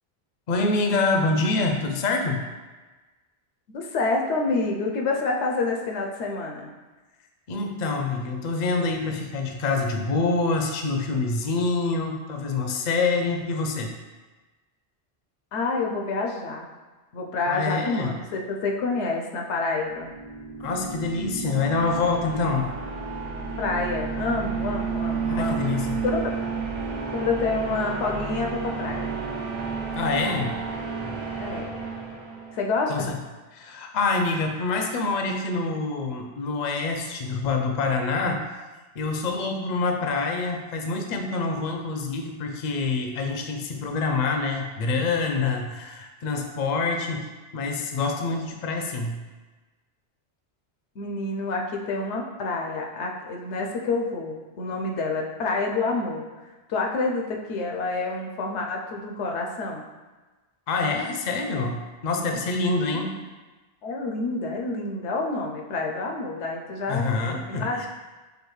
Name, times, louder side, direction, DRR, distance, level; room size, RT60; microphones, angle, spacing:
voice 1, 0.5-2.5 7.5-13.9 17.5-18.1 20.6-22.8 25.2-26.0 29.9-30.5 32.9-33.2 33.5-38.5 39.0-47.3 47.5-49.2 60.7-63.1 66.9-67.9, left 3 dB, 60° left, 3 dB, 0.5 m, -26 dB
voice 2, 3.7-6.7 15.5-16.7 17.1-20.1 23.6-25.7 26.0-26.3 27.1-29.1 31.4-31.7 32.5-33.1 51.0-56.3 56.7-59.8 62.9-63.0 63.8-67.1 67.5-67.9, left 3 dB, 90° left, 1 dB, 0.9 m, -28 dB
sound 1, 19.8-32.8, right 5 dB, 60° right, 0.8 m, -31 dB
5.0 x 2.3 x 3.1 m, 1.2 s
omnidirectional pair, 1.1 m